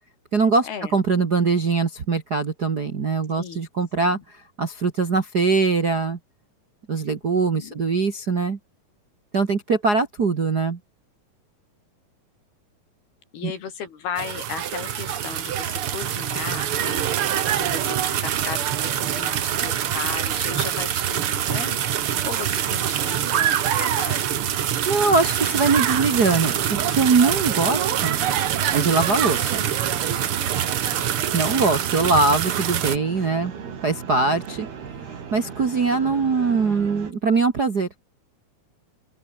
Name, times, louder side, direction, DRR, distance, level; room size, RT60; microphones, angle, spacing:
voice 1, 0.3-4.2 4.6-6.2 6.9-8.6 9.3-10.8 13.4-13.5 24.8-28.2 28.7-29.7 30.1-30.3 31.0-33.5 33.8-34.7 35.3-37.9, right 4 dB, 40° right, 1.4 m, -22 dB
voice 2, 7.2-7.8 13.3-17.0 17.5-24.3 30.6-31.6, left 7 dB, 85° left, 5.8 m, -36 dB
sound 1, 14.2-33.0, right 10 dB, 70° right, 1.3 m, -24 dB
sound 2, 25.0-37.1, right 6 dB, 90° right, 6.1 m, -37 dB
open air
omnidirectional pair, 4.4 m